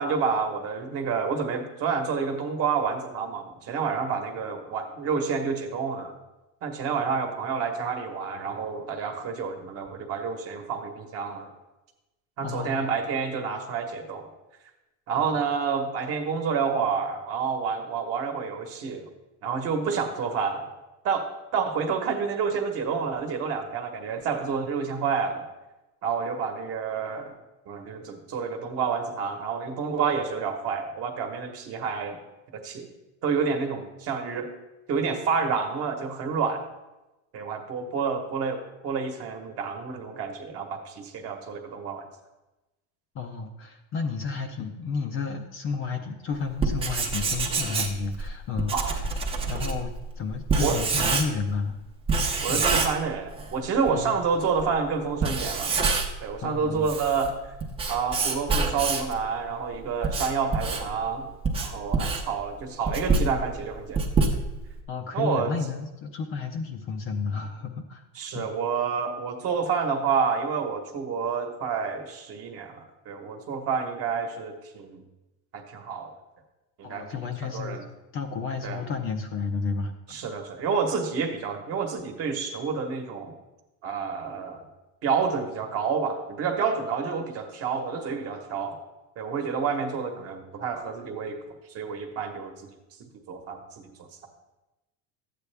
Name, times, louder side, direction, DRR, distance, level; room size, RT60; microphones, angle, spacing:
voice 1, 0.0-6.1 6.6-11.5 12.4-14.3 15.1-19.1 19.4-20.6 21.0-21.3 21.5-25.4 26.0-27.3 27.7-32.2 32.5-32.9 33.2-34.5 34.9-36.6 37.3-42.1 48.7-49.0 50.6-50.8 52.4-55.8 56.2-57.3 57.9-61.3 61.6-64.0 65.1-65.6 68.1-75.0 75.5-76.1 76.8-77.9 78.6-78.8 80.1-83.3 83.8-84.6 85.0-88.8 89.2-91.4 91.7-92.5 93.0-93.9, right 5 dB, 35° right, 4 dB, 1.2 m, -29 dB
voice 2, 12.4-12.9 43.1-49.1 49.5-51.8 52.5-52.7 53.9-54.2 56.4-56.9 64.9-68.0 68.3-68.5 76.8-77.9 78.1-80.2, left 5 dB, 30° left, 5 dB, 0.6 m, -32 dB
Writing, 46.5-51.6 52.1-53.5 53.9-54.0 54.6-54.7 55.1-56.3 56.7-59.2 59.7-64.8, right 4 dB, 15° right, 0.7 m, -26 dB
12.5 x 8.4 x 3.4 m, 1.0 s
cardioid pair, 165°, 40 cm